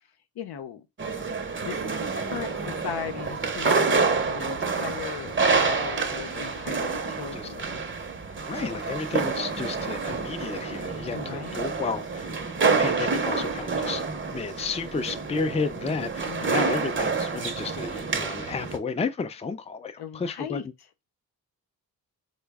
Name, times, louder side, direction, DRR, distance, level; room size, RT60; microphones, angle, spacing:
voice 1, 0.4-0.9 1.6-1.8 2.2-7.8 11.1-11.7 12.6-13.0 16.3-16.7 20.0-20.6, left 8 dB, 80° left, 0.6 m, -38 dB
sound 1, 1.0-18.8, right 4 dB, 30° right, 0.7 m, -28 dB
voice 2, 8.5-12.3 12.6-14.0 14.3-20.6, left 5 dB, 15° left, 0.4 m, -32 dB
3.9 x 2.1 x 3.4 m
cardioid pair, 60°, 38 cm